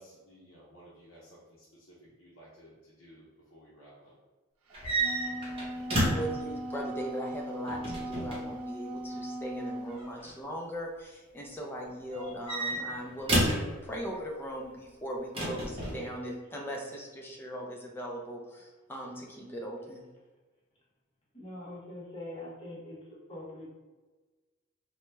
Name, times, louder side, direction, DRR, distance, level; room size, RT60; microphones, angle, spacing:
voice 1, 0.0-3.2 3.5-4.1, equal, 70° left, -7 dB, 0.6 m, -55 dB
sound 1, 4.7-6.4 7.7-8.4 9.9-10.3 12.1-13.7 15.3-16.0, right 1 dB, 25° right, 0.8 m, -30 dB
Wind instrument woodwind instrument, 4.8-9.9, right 1 dB, 90° right, 0.4 m, -38 dB
voice 2, 5.9-20.0, equal, 10° left, -1 dB, 0.4 m, -39 dB
voice 3, 21.3-23.7, left 1 dB, 25° left, -5 dB, 0.8 m, -43 dB
2.9 x 2.1 x 3.2 m, 1.3 s
head